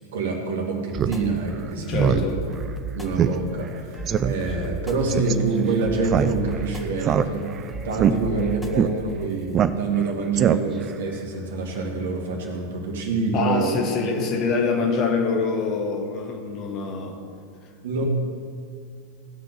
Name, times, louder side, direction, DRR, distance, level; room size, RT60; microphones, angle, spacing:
voice 1, 0.0-2.4 2.9-7.5 7.8-13.8 17.8-18.0, right 3 dB, 60° right, 0 dB, 2.2 m, -26 dB
Speech synthesizer, 0.9-1.2 1.5-1.6 1.9-2.3 2.6-2.7 3.2-3.3 3.6-3.7 4.1-4.3 5.1-5.3 6.0-6.6 7.0-7.6 7.9-8.1 8.7-8.9 9.5-10.0 10.3-10.9, right 9 dB, 30° right, 0.5 m, -21 dB
sound 1, 1.0-13.5, right 2 dB, 5° left, 1.2 m, -36 dB
voice 2, 1.9-2.4 13.3-17.2, left 4 dB, 35° left, 2 dB, 1.7 m, -25 dB
16.5 x 6.1 x 6.8 m, 2.3 s
figure-of-eight pair, 90°, 0 cm